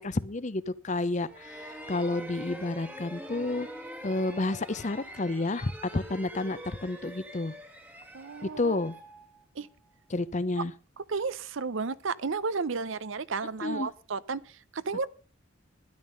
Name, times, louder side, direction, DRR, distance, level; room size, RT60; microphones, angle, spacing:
voice 1, 0.0-3.7 4.0-7.5 8.4-8.9 10.1-10.7 13.6-13.9, left 2 dB, 35° left, 0.6 m, -30 dB
sound 1, 1.2-9.9, equal, 10° right, 1.4 m, -44 dB
voice 2, 8.1-8.8 9.6-9.7 11.1-15.1, right 4 dB, 65° right, 0.7 m, -33 dB
13.0 x 11.0 x 5.4 m
head